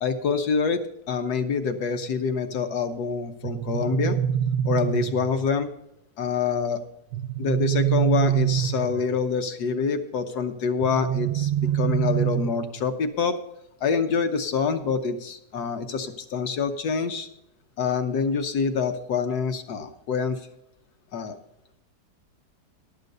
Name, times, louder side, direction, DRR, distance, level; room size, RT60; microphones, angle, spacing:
voice 1, 0.0-0.8 1.1-4.2 4.6-5.7 6.2-6.8 7.4-13.4 13.8-17.3 17.8-20.4 21.1-21.4, left 5 dB, 65° left, 8 dB, 1.5 m, -26 dB
sound 1, 3.4-5.4 7.1-9.2 10.8-12.8, right 11 dB, 70° right, 1.1 m, -25 dB
12.0 x 6.7 x 6.6 m, 0.79 s
omnidirectional pair, 1.9 m